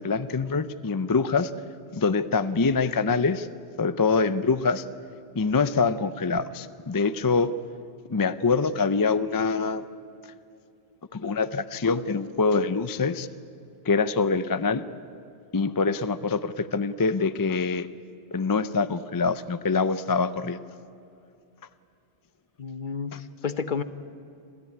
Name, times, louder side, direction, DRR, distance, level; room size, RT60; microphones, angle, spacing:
voice 1, 0.0-1.5 1.9-3.5 3.8-4.8 5.4-7.5 8.1-9.8 11.1-13.3 13.8-14.8 15.5-17.9 18.3-20.6 23.1-23.2, left 4 dB, 30° left, 12 dB, 0.4 m, -25 dB
voice 2, 22.6-23.8, left 5 dB, 50° left, 11 dB, 1.0 m, -31 dB
26.5 x 15.0 x 9.7 m, 2.6 s
omnidirectional pair, 1.1 m